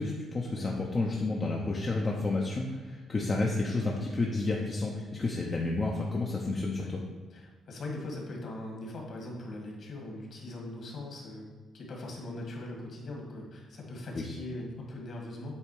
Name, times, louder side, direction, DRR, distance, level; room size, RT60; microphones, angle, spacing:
voice 1, 0.0-7.0 14.1-14.3, left 3 dB, 25° left, -2 dB, 0.7 m, -31 dB
voice 2, 7.3-11.4 11.7-15.5, left 1 dB, 50° left, 0 dB, 1.7 m, -40 dB
8.6 x 3.6 x 4.8 m, 1.4 s
cardioid pair, 145°, 0 cm